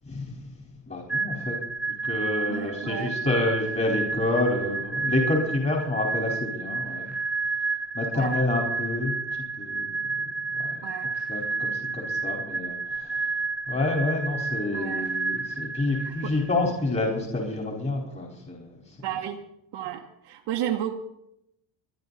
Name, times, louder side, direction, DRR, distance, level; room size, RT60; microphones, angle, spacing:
voice 1, 0.0-0.4 0.9-1.6 2.0-7.1 7.9-9.2 9.6-10.1 10.5-10.8 11.3-13.3 13.7-18.9, left 2 dB, 25° left, 0 dB, 4.2 m, -28 dB
sound 1, 1.1-16.7, right 3 dB, ahead, 0.6 m, -31 dB
voice 2, 2.5-3.2 8.1-8.4 10.8-11.1 14.7-15.1 16.0-16.3 19.0-19.4 19.7-20.9, right 11 dB, 65° right, -1 dB, 1.5 m, -32 dB
25.0 x 10.5 x 4.1 m, 0.79 s
supercardioid pair, 90°, 48 cm